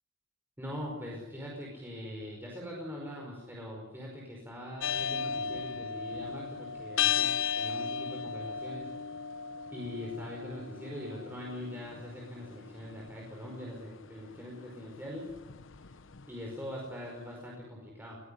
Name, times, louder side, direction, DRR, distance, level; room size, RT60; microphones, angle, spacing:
voice 1, 0.6-8.9 9.7-15.3 15.8-15.9 16.3-18.2, left 1 dB, 10° right, -2 dB, 5.1 m, -42 dB
sound 1, 4.8-16.9, left 7 dB, 70° left, 1.0 m, -36 dB
21.0 x 17.5 x 9.9 m, 1.1 s
head